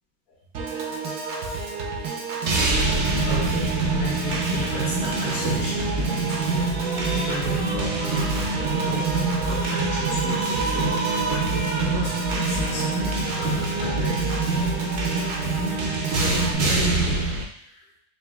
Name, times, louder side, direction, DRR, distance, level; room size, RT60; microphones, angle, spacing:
Piano / Organ, 0.5-16.5, right 4 dB, 75° right, 1.3 m, -31 dB
sound 1, 2.5-17.4, right 3 dB, 60° right, 0.8 m, -25 dB
voice 1, 2.8-5.9 6.3-6.7 7.1-9.1 9.4-14.5 16.1-17.2 17.5-17.9, left 2 dB, 65° left, -6 dB, 1.4 m, -34 dB
sound 2, 5.8-15.2, left 1 dB, 30° left, 0.7 m, -34 dB
4.3 x 2.5 x 3.4 m, 0.71 s
omnidirectional pair, 1.8 m